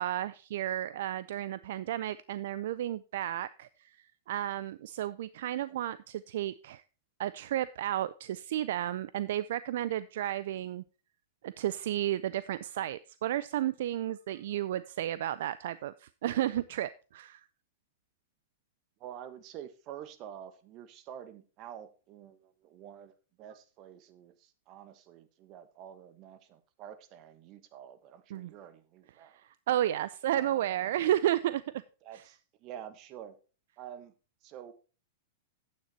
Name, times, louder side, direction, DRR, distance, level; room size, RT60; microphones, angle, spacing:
voice 1, 0.0-6.8 7.2-10.8 11.4-17.4 28.3-28.5 29.2-31.8 32.1-32.2, right 12 dB, 65° right, 0.4 m, -32 dB
voice 2, 19.0-23.1 23.4-29.4 30.3-30.9 32.0-33.4 33.8-34.1 34.4-34.7, right 10 dB, 45° right, 1.3 m, -48 dB
9.6 x 8.2 x 4.2 m
hypercardioid pair, 115°, 0 cm